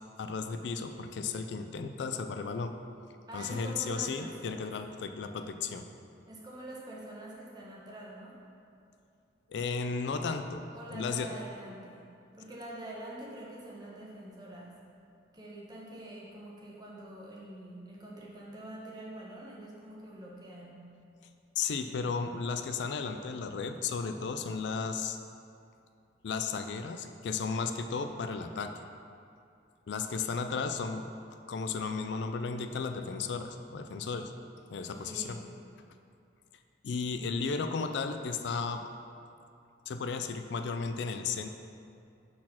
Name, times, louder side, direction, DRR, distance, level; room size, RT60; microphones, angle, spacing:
voice 1, 0.2-2.8 3.3-5.9 9.5-11.3 21.6-25.2 26.2-28.7 29.9-31.1 31.5-34.3 34.7-35.4 36.8-38.8 39.9-41.5, left 5 dB, 65° left, 7 dB, 0.4 m, -34 dB
voice 2, 3.3-4.8 6.3-8.4 10.7-12.1 12.3-14.8 15.3-20.8 34.9-35.5, right 1 dB, 20° right, -5 dB, 1.2 m, -45 dB
6.3 x 4.2 x 5.8 m, 2.5 s
head